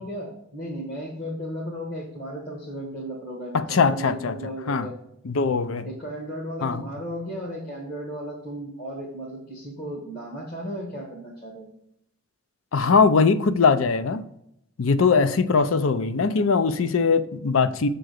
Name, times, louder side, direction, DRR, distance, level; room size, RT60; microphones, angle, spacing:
voice 1, 0.0-4.9 5.8-11.7, equal, 45° left, 1.5 m, -35 dB
voice 2, 3.5-4.4 4.7-4.9 5.2-5.9 6.6-6.8 12.7-14.2 14.8-17.9, left 5 dB, 75° left, 0.5 m, -21 dB
6.6 x 3.8 x 6.4 m
head